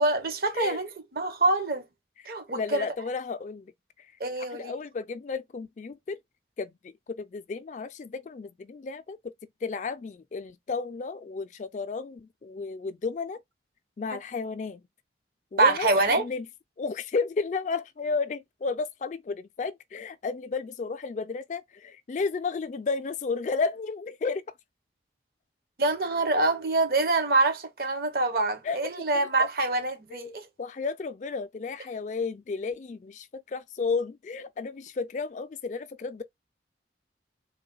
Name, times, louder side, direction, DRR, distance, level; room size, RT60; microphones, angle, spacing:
voice 1, 0.0-1.8 2.3-2.9 4.2-4.8 14.1-14.2 15.6-16.3 25.8-30.5, right 2 dB, 55° right, 0.8 m, -25 dB
voice 2, 2.5-3.7 4.4-6.2 6.6-9.2 9.6-13.4 14.0-14.8 15.5-16.5 16.8-24.4 28.6-28.8 29.1-29.5 30.1-36.2, left 4 dB, 40° left, 0.3 m, -33 dB
3.7 x 2.1 x 3.9 m
head